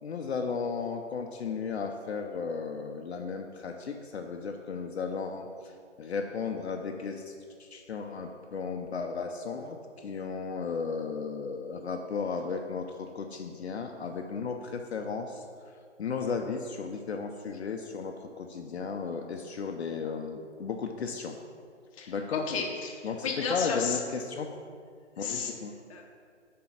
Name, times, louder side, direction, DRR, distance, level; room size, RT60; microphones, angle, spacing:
voice 1, 0.0-5.7 6.0-7.3 7.6-15.4 16.0-21.3 22.1-22.5 23.0-24.5 25.2-25.7, left 5 dB, 60° left, 3 dB, 0.7 m, -35 dB
voice 2, 22.0-24.0 25.2-25.5 25.9-26.0, left 5 dB, 30° left, 0 dB, 0.9 m, -33 dB
7.6 x 3.8 x 5.8 m, 2.2 s
figure-of-eight pair, 135°, 36 cm